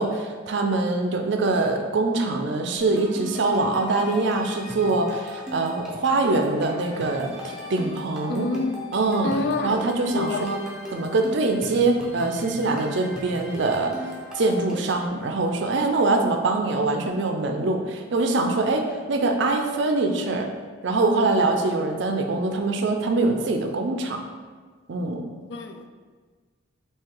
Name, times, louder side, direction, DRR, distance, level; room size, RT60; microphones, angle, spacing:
voice 1, 0.0-8.5 8.9-9.3 9.6-20.5 20.8-24.2 24.9-25.2, right 3 dB, 55° right, 4 dB, 0.4 m, -24 dB
sound 1, 2.8-15.1, left 1 dB, 5° right, 0.6 m, -38 dB
voice 2, 8.3-8.8 9.2-9.8 10.1-10.4 25.5-25.9, left 3 dB, 55° left, 5 dB, 0.3 m, -27 dB
3.7 x 2.8 x 4.4 m, 1.5 s
head